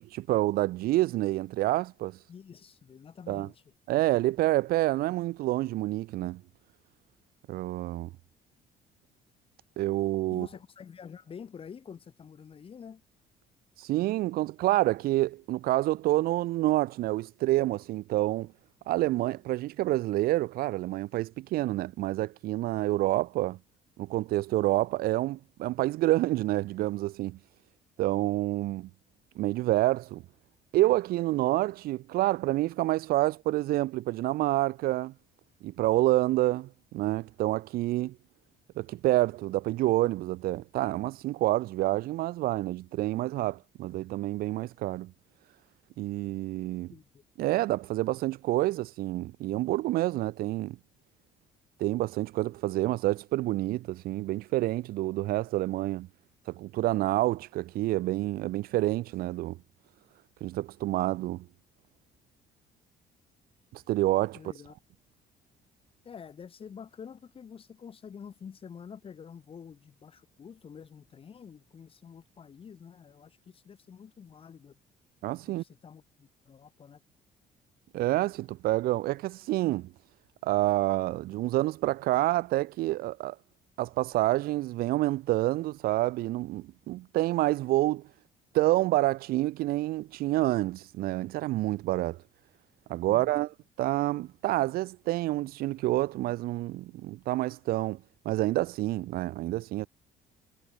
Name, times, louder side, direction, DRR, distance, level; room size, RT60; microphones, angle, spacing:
voice 1, 0.0-2.2 3.3-3.5 3.9-6.4 7.5-8.1 9.8-10.5 13.8-18.5 18.9-23.6 24.0-27.4 28.0-28.9 29.4-30.2 30.7-35.1 35.6-38.1 38.8-45.1 46.0-46.9 47.4-50.8 51.8-56.1 56.5-59.6 60.4-61.4 63.7-64.4 75.2-75.6 77.9-79.9 80.4-83.4 83.8-88.0 88.5-92.2 92.9-93.5 93.8-98.0 98.2-99.9, right 17 dB, 75° right, 0.9 m, -28 dB
voice 2, 2.3-3.6 10.3-13.0 46.9-47.2 64.3-64.7 66.0-74.8 75.5-77.0 93.0-93.4, left 7 dB, 35° left, 4.9 m, -48 dB
cardioid pair, 130°, 15 cm